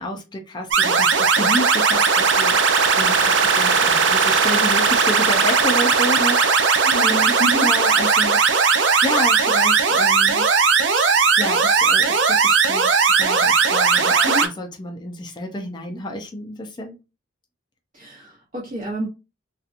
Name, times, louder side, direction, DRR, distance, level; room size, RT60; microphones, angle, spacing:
voice 1, 0.0-7.3 7.6-8.6 9.0-10.5 11.4-17.0, left 1 dB, 25° left, 3 dB, 0.4 m, -30 dB
sound 1, 0.7-14.5, right 5 dB, 75° right, 0.5 m, -17 dB
voice 2, 6.8-7.7 14.2-14.5 17.9-19.1, right 1 dB, 45° right, -5 dB, 0.8 m, -28 dB
2.7 x 2.3 x 2.5 m, 0.27 s
head